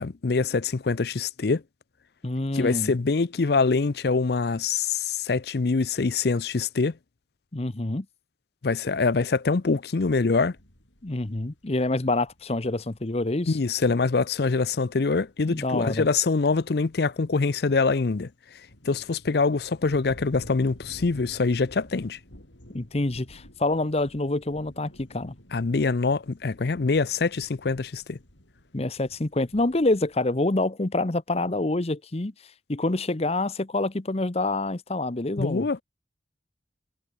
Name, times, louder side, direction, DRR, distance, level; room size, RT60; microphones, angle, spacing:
voice 1, 0.0-1.6 2.5-6.9 8.6-10.6 13.5-18.3 18.8-22.2 25.5-28.2 35.4-35.8, left 4 dB, 60° left, 0.6 m, -24 dB
voice 2, 2.2-2.9 7.5-8.1 11.0-13.6 15.5-16.1 22.7-25.3 28.7-32.3 32.7-35.7, left 2 dB, 35° left, 0.9 m, -27 dB
sound 1, 10.5-17.8 18.2-30.3, equal, 90° left, 7.7 m, -52 dB
head